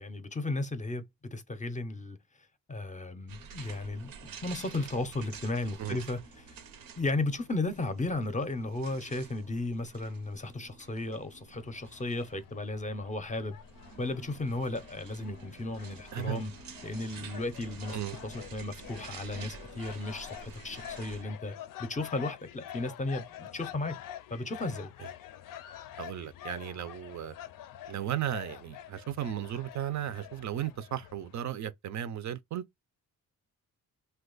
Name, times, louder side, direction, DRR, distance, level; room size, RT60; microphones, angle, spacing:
voice 1, 0.0-2.2 2.7-4.1 4.4-6.6 7.0-13.6 14.0-16.5 16.8-18.0 18.2-24.0 24.3-24.9, left 2 dB, 20° left, 0.5 m, -35 dB
sound 1, 3.3-21.2, right 6 dB, 85° right, 0.8 m, -49 dB
sound 2, 11.6-31.3, left 11 dB, 75° left, 0.5 m, -47 dB
voice 2, 16.1-16.4 17.9-18.2 26.0-27.3 27.9-32.6, right 11 dB, 55° right, 0.5 m, -35 dB
2.9 x 2.2 x 3.8 m
cardioid pair, 95°, 33 cm